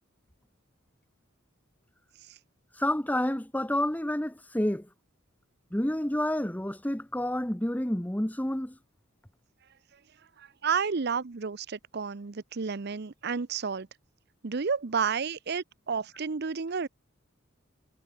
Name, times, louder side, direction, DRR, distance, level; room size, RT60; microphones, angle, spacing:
voice 1, 2.8-4.9 5.7-8.8, left 1 dB, 10° left, 1.0 m, -29 dB
voice 2, 10.4-13.9 14.4-16.9, right 5 dB, 55° right, 0.7 m, -31 dB
head